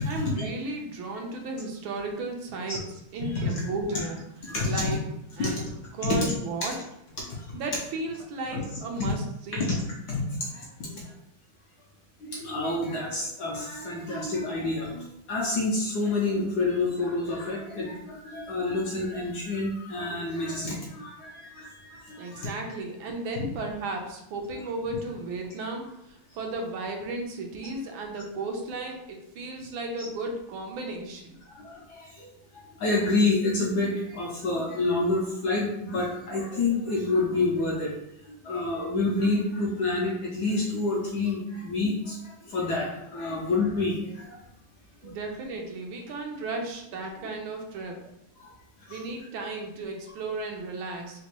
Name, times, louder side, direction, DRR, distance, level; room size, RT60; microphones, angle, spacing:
voice 1, 0.0-2.8 3.1-4.2 4.6-5.0 5.4-5.7 5.9-6.8 7.5-9.8 22.2-31.4 45.0-48.0 48.9-51.2, right 2 dB, 85° right, 2 dB, 1.4 m, -34 dB
voice 2, 3.2-3.6 4.4-5.0 5.4-5.6 6.0-6.3 6.6-6.7 7.3-7.5 8.5-8.6 9.0-9.1 9.5-9.8 10.1-10.2 10.5-11.0 12.2-22.5 30.0-30.1 31.5-32.3 32.5-38.0 38.4-44.4 45.0-45.1 48.4-48.5 48.9-49.0, left 3 dB, 70° left, -3 dB, 1.0 m, -28 dB
4.0 x 2.2 x 2.9 m, 0.82 s
omnidirectional pair, 2.2 m